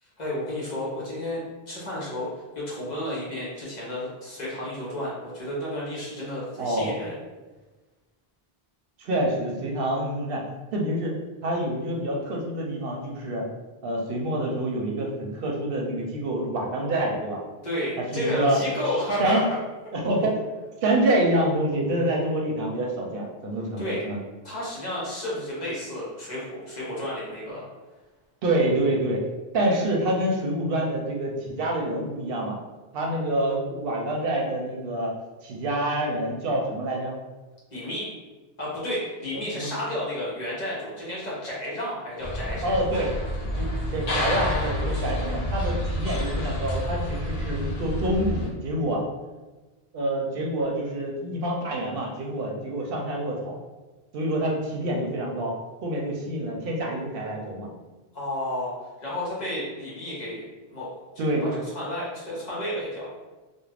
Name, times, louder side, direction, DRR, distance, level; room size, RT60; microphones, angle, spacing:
voice 1, 0.2-7.1 17.6-19.6 23.8-24.0 24.4-27.6 37.7-38.1 38.6-42.7 58.1-58.7 59.0-60.5 60.7-60.9 61.1-61.5 61.7-63.1, left 1 dB, 45° left, -6 dB, 0.9 m, -31 dB
voice 2, 6.6-7.0 9.0-10.4 10.7-11.1 11.4-13.5 13.8-17.4 18.1-18.6 18.8-19.5 19.9-20.4 20.8-24.2 28.4-29.2 29.5-32.6 32.9-35.1 35.4-37.1 39.3-39.7 42.6-43.1 43.6-49.0 49.9-53.5 54.1-55.5 55.8-57.7 61.2-61.4, right 1 dB, 70° right, -1 dB, 0.7 m, -27 dB
sound 1, 42.2-48.5, equal, 80° left, 0.9 m, -29 dB
2.3 x 2.1 x 3.2 m, 1.2 s
omnidirectional pair, 1.0 m